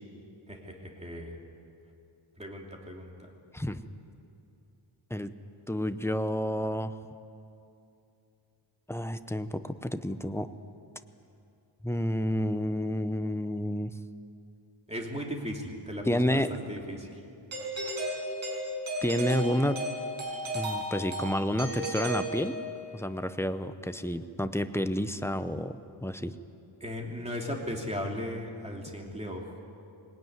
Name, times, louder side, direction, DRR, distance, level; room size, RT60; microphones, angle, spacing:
voice 1, 0.5-1.4 2.4-3.3 14.9-17.2 26.8-29.6, equal, 15° right, 0 dB, 2.9 m, -37 dB
voice 2, 5.7-6.9 8.9-10.5 11.8-13.9 16.1-16.6 19.0-19.8 20.5-22.6 22.9-26.3, equal, 5° left, 10 dB, 0.7 m, -30 dB
Doorbell, 17.5-22.9, right 1 dB, 70° right, 6.1 m, -34 dB
22.0 x 19.5 x 9.4 m, 2.7 s
wide cardioid pair, 145°, 49 cm